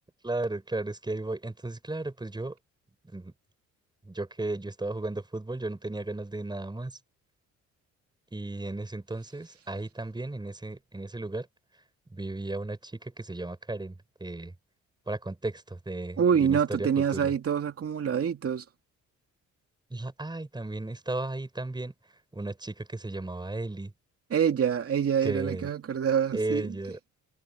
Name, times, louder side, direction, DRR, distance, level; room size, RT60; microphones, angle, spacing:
voice 1, 0.2-2.6 3.0-3.3 4.0-7.0 8.3-11.5 12.1-14.5 15.1-17.3 19.9-21.9 22.3-23.9 25.2-25.7 26.3-27.0, right 2 dB, 15° right, 6.1 m, -35 dB
voice 2, 16.2-18.6 24.3-26.7, right 7 dB, 50° right, 2.6 m, -26 dB
cardioid pair, 90°, 30 cm